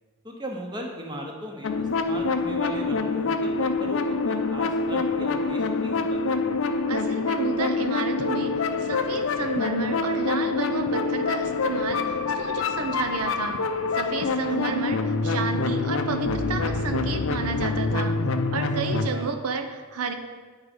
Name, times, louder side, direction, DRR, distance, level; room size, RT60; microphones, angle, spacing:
voice 1, 0.2-6.4 14.6-14.8 18.6-19.3, equal, 20° right, 1 dB, 0.9 m, -38 dB
sound 1, 1.6-19.1, left 3 dB, 65° left, 0.5 m, -26 dB
voice 2, 6.9-13.6 13.9-18.2 18.5-20.1, right 5 dB, 90° right, 6 dB, 0.6 m, -31 dB
9.5 x 3.6 x 5.3 m, 1.5 s
head